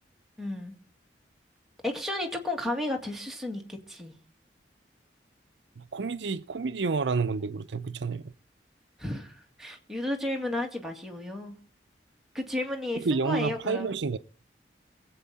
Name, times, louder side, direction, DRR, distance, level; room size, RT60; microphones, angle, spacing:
voice 1, 0.4-0.7 1.8-4.1 9.0-11.5 12.3-13.9, left 1 dB, ahead, 2.1 m, -33 dB
voice 2, 5.8-8.3 13.0-14.2, right 4 dB, 80° right, 0.6 m, -29 dB
22.5 x 8.0 x 4.1 m
head